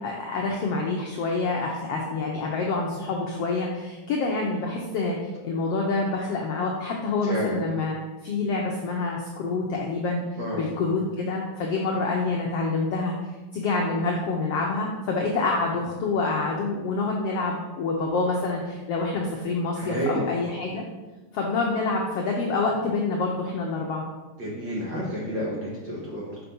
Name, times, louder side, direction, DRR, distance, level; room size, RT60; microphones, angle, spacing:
voice 1, 0.0-5.2 5.4-7.9 8.2-10.2 10.5-13.1 13.5-20.8 21.3-24.0, left 3 dB, 75° left, -1 dB, 1.4 m, -27 dB
voice 2, 7.2-7.5 10.4-10.6 19.7-20.2 24.4-26.4, equal, 50° right, -5 dB, 1.6 m, -30 dB
6.0 x 5.8 x 5.4 m, 1.2 s
omnidirectional pair, 3.7 m